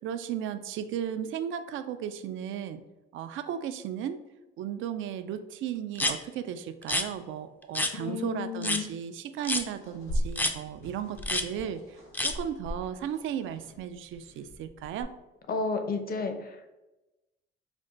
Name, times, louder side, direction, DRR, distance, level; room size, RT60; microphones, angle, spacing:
voice 1, 0.0-2.8 3.1-4.2 4.6-15.1, right 9 dB, 80° right, 10 dB, 0.4 m, -35 dB
sound 1, 6.0-6.2 6.8-7.1 7.8-7.9 8.6-8.8 9.4-9.7 10.4-10.5 11.2-11.5 12.1-12.3, left 1 dB, 10° left, 0.4 m, -28 dB
voice 2, 7.9-8.9 15.5-16.7, left 4 dB, 50° left, 6 dB, 0.6 m, -32 dB
sound 2, 9.8-15.0, equal, 90° left, 1.4 m, -38 dB
5.2 x 2.2 x 3.8 m, 1.0 s
cardioid pair, 90°, 20 cm